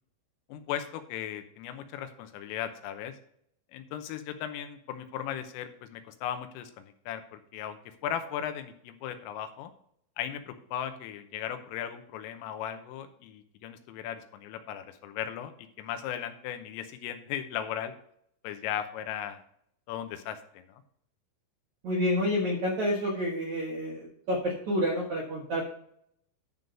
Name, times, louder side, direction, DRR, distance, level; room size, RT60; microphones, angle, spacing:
voice 1, 0.5-3.2 3.7-9.7 10.2-17.9 18.4-19.4 19.9-20.8, left 10 dB, 90° left, 8 dB, 3.5 m, -37 dB
voice 2, 21.8-25.6, equal, 70° right, -3 dB, 1.8 m, -29 dB
11.0 x 3.9 x 6.7 m, 0.68 s
omnidirectional pair, 5.8 m